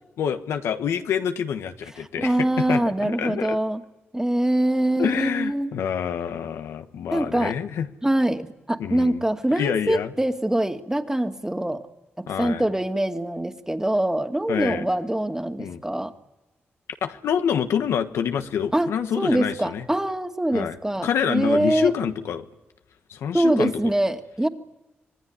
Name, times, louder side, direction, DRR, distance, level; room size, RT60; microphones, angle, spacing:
voice 1, 0.2-3.6 5.0-7.9 8.8-9.2 9.6-10.1 12.3-12.6 14.5-14.8 15.6-15.8 17.0-19.8 20.5-20.8 21.0-22.5 23.1-23.7, left 8 dB, 90° left, 7 dB, 1.4 m, -27 dB
voice 2, 2.2-3.8 4.1-5.7 7.1-7.5 8.0-11.8 12.2-16.1 18.7-18.9 19.2-21.9 23.3-24.5, right 1 dB, 10° right, 6 dB, 2.4 m, -24 dB
26.0 x 19.0 x 9.8 m, 1.1 s
cardioid pair, 55°, 4 cm